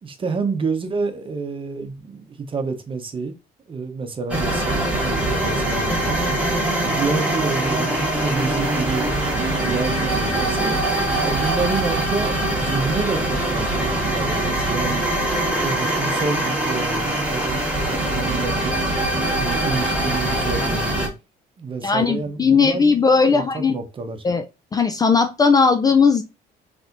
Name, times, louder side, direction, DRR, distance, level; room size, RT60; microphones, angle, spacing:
voice 1, 0.0-3.3 3.7-6.2 6.8-10.8 11.2-15.1 15.6-18.8 19.4-21.0 21.6-22.9 23.1-24.2, right 4 dB, 30° right, 0.8 m, -29 dB
sound 1, 4.3-21.1, right 1 dB, 5° right, 1.3 m, -22 dB
voice 2, 21.8-23.8 24.2-24.4 24.7-26.2, left 5 dB, 20° left, 0.4 m, -17 dB
4.1 x 3.4 x 2.5 m
cardioid pair, 110°, 17 cm